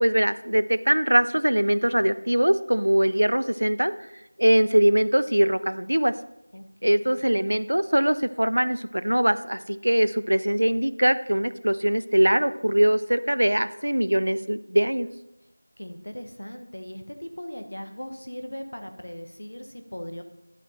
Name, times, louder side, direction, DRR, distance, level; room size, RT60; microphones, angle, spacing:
voice 1, 0.0-3.9 4.4-6.1 6.8-15.1, right 1 dB, 65° right, 14 dB, 0.5 m, -22 dB
voice 2, 6.5-7.3 15.8-20.2, equal, 55° left, 6 dB, 1.2 m, -39 dB
11.5 x 8.0 x 4.3 m, 0.88 s
figure-of-eight pair, 180°, 0 cm